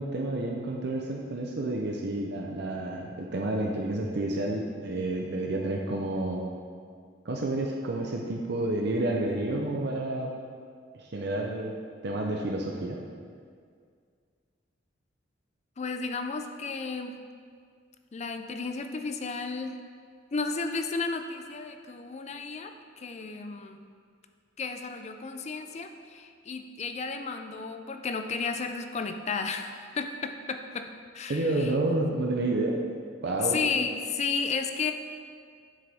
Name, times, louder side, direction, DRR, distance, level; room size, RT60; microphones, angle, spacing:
voice 1, 0.0-6.5 7.2-10.3 10.9-11.7 12.0-13.0 31.3-32.8 33.2-33.6, right 2 dB, 60° right, 0 dB, 0.6 m, -30 dB
voice 2, 15.8-17.2 18.1-19.8 20.3-23.8 24.6-30.9 31.1-31.8 33.4-34.9, left 4 dB, 35° left, 7 dB, 0.4 m, -33 dB
7.5 x 6.3 x 3.5 m, 2.1 s
head